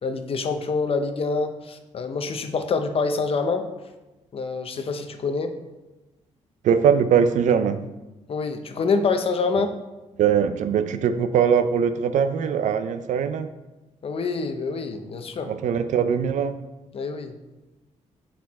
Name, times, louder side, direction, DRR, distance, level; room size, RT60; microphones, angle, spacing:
voice 1, 0.0-3.6 4.3-5.5 8.3-9.7 14.0-15.5 16.9-17.3, left 4 dB, 50° left, 7 dB, 0.7 m, -26 dB
voice 2, 6.6-7.8 10.2-13.5 15.5-16.5, right 7 dB, 80° right, 10 dB, 0.5 m, -21 dB
6.4 x 4.5 x 4.2 m, 1.1 s
cardioid pair, 100°, 12 cm